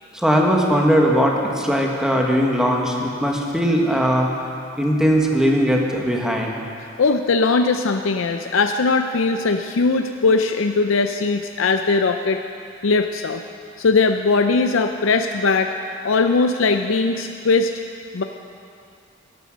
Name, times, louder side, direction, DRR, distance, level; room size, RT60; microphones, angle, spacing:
voice 1, 0.1-4.4 4.8-6.6, equal, 5° right, -1 dB, 1.4 m, -19 dB
voice 2, 7.0-12.4 12.8-13.4 13.8-15.7 16.0-17.7 18.1-18.2, left 4 dB, 75° left, 6 dB, 0.5 m, -19 dB
12.5 x 12.0 x 6.4 m, 2.5 s
head